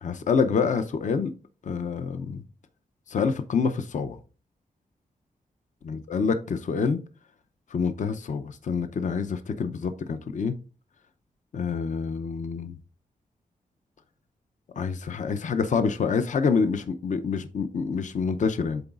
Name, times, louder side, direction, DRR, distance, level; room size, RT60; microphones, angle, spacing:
voice 1, 0.0-1.3 1.6-2.4 3.1-4.2 5.8-7.0 7.7-10.6 11.5-12.7 14.8-18.8, left 5 dB, 55° left, 0.5 m, -27 dB
11.5 x 3.9 x 2.4 m
wide cardioid pair, 130°, 15 cm